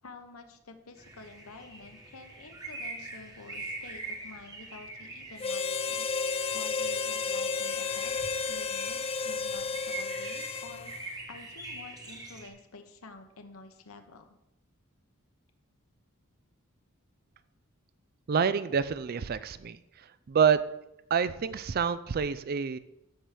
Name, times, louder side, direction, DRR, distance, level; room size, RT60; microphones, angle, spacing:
voice 1, 0.0-6.1 6.5-10.9 11.3-14.2, left 3 dB, 75° left, 6 dB, 1.0 m, -49 dB
sound 1, 1.0-12.5, right 2 dB, 15° right, 1.3 m, -44 dB
Harmonica, 5.4-11.0, left 5 dB, 25° left, 0.4 m, -32 dB
voice 2, 18.3-19.8 20.3-20.6 21.1-22.8, right 6 dB, 45° right, 14 dB, 0.4 m, -27 dB
13.5 x 6.0 x 3.5 m, 0.87 s
head